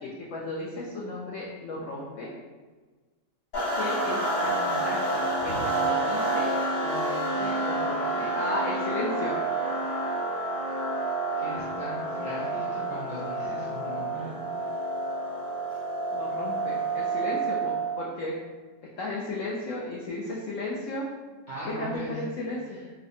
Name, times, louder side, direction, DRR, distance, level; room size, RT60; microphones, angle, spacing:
voice 1, 0.0-2.3 3.8-6.5 6.8-9.3 16.1-18.3 19.0-21.1 21.6-22.8, left 2 dB, 85° left, -4 dB, 0.6 m, -35 dB
sound 1, 3.5-18.1, right 2 dB, 55° left, 1.4 m, -29 dB
voice 2, 11.4-14.3 21.5-22.2 22.7-22.8, right 1 dB, 55° right, -9 dB, 0.5 m, -39 dB
4.8 x 2.1 x 2.6 m, 1.4 s
omnidirectional pair, 1.9 m